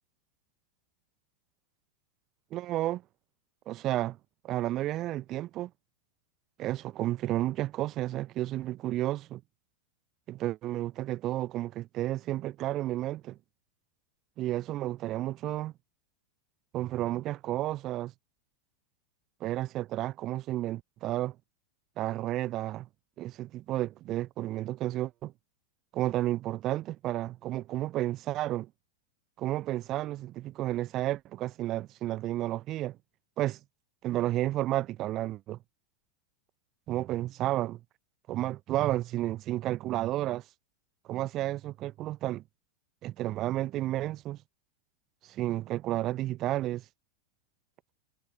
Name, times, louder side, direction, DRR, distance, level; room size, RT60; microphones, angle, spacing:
voice 1, 2.5-3.0 3.7-4.2 4.4-5.7 6.6-9.4 10.3-13.4 14.4-15.7 16.7-18.1 19.4-21.3 22.0-22.9 23.2-25.3 25.9-28.7 29.4-33.0 33.4-33.6 34.0-35.6 36.9-37.8 38.3-40.4 41.1-42.4 43.0-44.4 45.3-46.8, right 15 dB, 35° right, 0.7 m, -32 dB
figure-of-eight pair, 90°, 0 cm